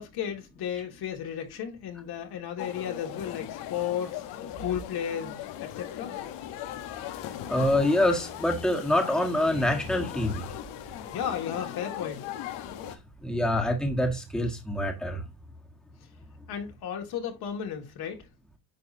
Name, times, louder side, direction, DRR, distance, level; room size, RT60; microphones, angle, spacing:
voice 1, 0.0-4.2 4.6-6.1 11.1-12.3 16.5-18.3, left 9 dB, 60° left, 2.3 m, -34 dB
sound 1, 2.6-13.0, left 11 dB, 80° left, 1.3 m, -39 dB
voice 2, 7.5-10.5 13.2-15.2, left 1 dB, ahead, 1.5 m, -26 dB
9.8 x 4.0 x 2.8 m
cardioid pair, 115°, 42 cm